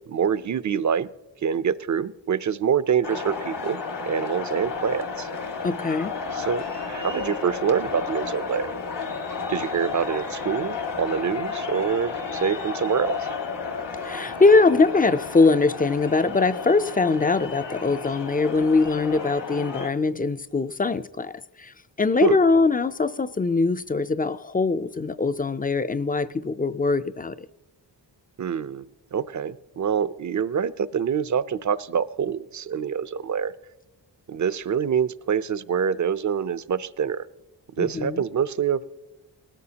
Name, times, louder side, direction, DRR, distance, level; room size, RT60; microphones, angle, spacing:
voice 1, 0.1-1.1 1.4-3.8 4.1-5.3 6.3-6.6 6.9-8.8 9.5-13.3 22.2-22.4 28.4-33.5 34.3-37.3 37.7-38.8, right 7 dB, 45° right, 0.6 m, -26 dB
Heerenveen Stadion, 3.0-19.9, left 5 dB, 75° left, 1.8 m, -32 dB
voice 2, 5.6-6.1 14.0-21.3 21.6-21.7 22.0-27.3 37.8-38.2, left 3 dB, 20° left, 0.4 m, -22 dB
19.5 x 14.0 x 2.9 m
cardioid pair, 65°, 42 cm